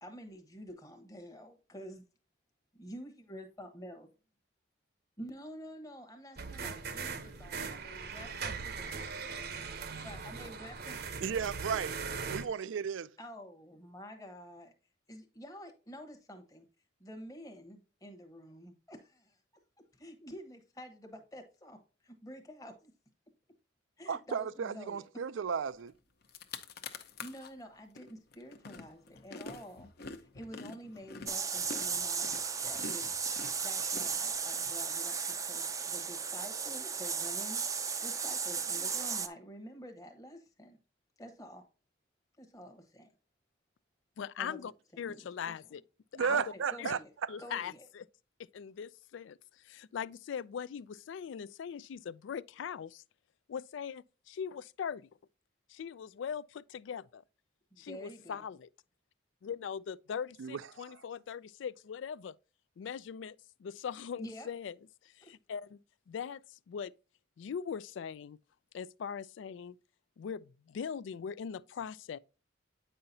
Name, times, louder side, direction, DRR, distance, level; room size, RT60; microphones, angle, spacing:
voice 1, 0.0-2.0 2.7-4.1 5.2-9.2 10.0-11.4 13.2-14.7 15.1-16.6 17.0-19.4 19.9-21.8 22.0-22.9 24.0-25.0 26.9-33.1 33.6-37.6 38.0-40.8 41.2-41.6 42.4-43.1 44.4-44.6 44.9-45.5 46.3-47.1 47.4-47.9 57.7-58.4 64.2-64.5 65.2-65.3, equal, 20° left, 1.0 m, -49 dB
sound 1, 6.4-12.5, right 5 dB, 50° right, 0.8 m, -40 dB
voice 2, 11.2-12.0 12.3-13.1 24.1-25.9 46.1-47.3 60.4-61.0, right 6 dB, 75° right, 0.4 m, -34 dB
sound 2, 25.9-26.0 26.2-27.5 28.0-34.7, left 4 dB, 50° left, 0.7 m, -46 dB
sound 3, 31.3-39.3, right 6 dB, 15° right, 0.4 m, -35 dB
voice 3, 44.2-44.7 45.0-45.8 46.1-46.4 46.8-46.9 47.3-48.1 48.5-53.0 53.5-55.1 55.7-57.2 57.8-58.7 59.4-62.3 62.8-64.7 65.0-65.8 66.1-66.9 67.4-68.4 68.7-69.8 70.2-72.2, left 7 dB, 70° left, 0.3 m, -41 dB
8.7 x 5.6 x 2.7 m
head